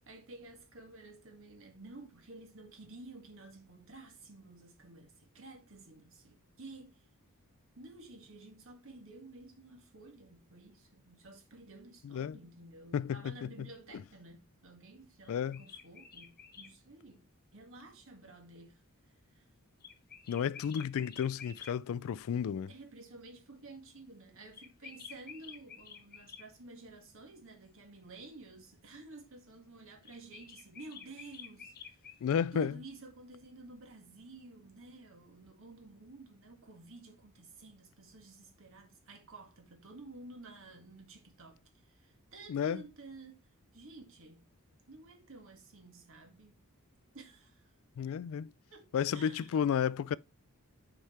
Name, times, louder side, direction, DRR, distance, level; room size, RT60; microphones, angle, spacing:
voice 1, 0.1-7.0 7.8-17.3 17.5-18.8 19.3-19.5 22.7-32.1 32.5-43.4 43.7-44.5 44.9-46.6 47.1-47.7 48.4-49.5, right 2 dB, 60° right, 1.9 m, -52 dB
voice 2, 12.0-12.4 12.9-13.7 15.3-15.6 20.3-22.7 32.2-32.8 42.5-42.8 48.0-48.5 48.9-50.2, left 8 dB, 65° left, 0.3 m, -32 dB
sound 1, 15.2-16.7 19.8-21.7 24.5-26.5 30.0-32.2, left 6 dB, 45° left, 1.2 m, -50 dB
6.4 x 4.9 x 4.3 m
head